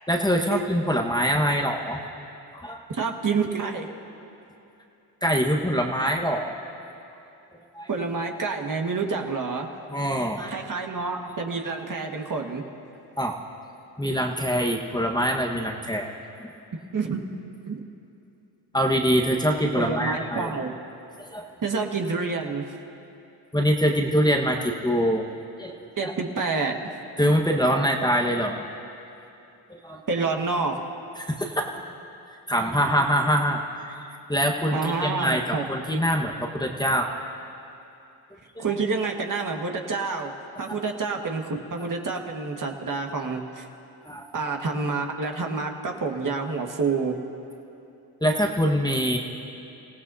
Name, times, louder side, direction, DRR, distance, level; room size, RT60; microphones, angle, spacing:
voice 1, 0.1-2.0 2.5-2.8 5.2-6.5 7.7-7.9 9.9-10.6 13.2-13.3 14.0-16.1 18.7-20.5 21.3-21.5 23.5-25.2 25.6-25.7 26.0-26.1 27.2-28.7 29.7-30.0 31.2-31.8 32.5-34.0 34.3-37.1 38.5-38.6 44.0-44.2 48.2-49.2, equal, 10° left, 0 dB, 1.4 m, -24 dB
voice 2, 2.9-3.9 7.9-9.7 10.5-12.6 16.9-17.2 17.7-17.8 19.8-20.8 21.6-22.8 26.0-26.8 30.1-30.8 34.7-35.6 38.6-43.7 44.3-47.1, right 4 dB, 40° right, 2 dB, 1.8 m, -28 dB
29.5 x 16.5 x 2.8 m, 2.8 s
supercardioid pair, 55°, 47 cm